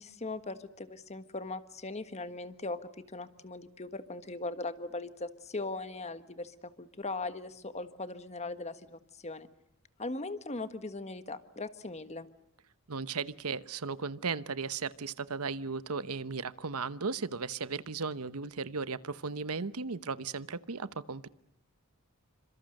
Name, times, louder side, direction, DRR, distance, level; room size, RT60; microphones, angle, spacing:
voice 1, 0.0-9.5 10.0-12.3, left 2 dB, 30° left, 11 dB, 1.5 m, -39 dB
voice 2, 12.9-21.3, right 4 dB, 85° right, 15 dB, 1.0 m, -36 dB
29.0 x 26.0 x 6.6 m, 0.77 s
head